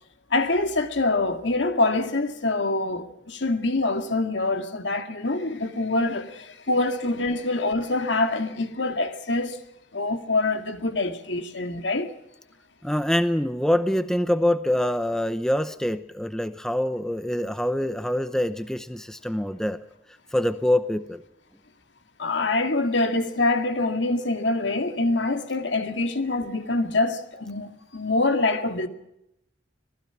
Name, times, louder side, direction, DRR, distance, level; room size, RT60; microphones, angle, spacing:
voice 1, 0.3-9.6 9.9-12.1 22.2-28.9, left 2 dB, 80° left, 2.2 m, -25 dB
voice 2, 12.8-19.8 20.3-21.2, left 1 dB, 5° left, 0.7 m, -25 dB
26.0 x 19.0 x 5.9 m
head